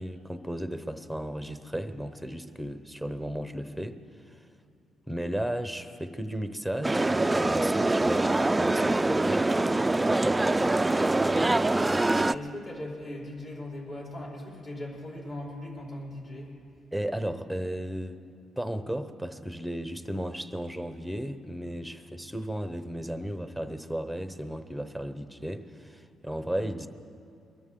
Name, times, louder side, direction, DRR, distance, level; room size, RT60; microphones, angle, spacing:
voice 1, 0.0-4.0 4.3-4.4 5.1-10.5 16.9-18.2 18.6-26.9, equal, ahead, 9 dB, 0.8 m, -34 dB
sound 1, 6.8-12.4, right 2 dB, 15° right, 0.3 m, -24 dB
voice 2, 11.9-16.6, left 1 dB, 45° left, -3 dB, 4.6 m, -39 dB
23.0 x 13.5 x 3.8 m, 2.6 s
cardioid pair, 90°, 0 cm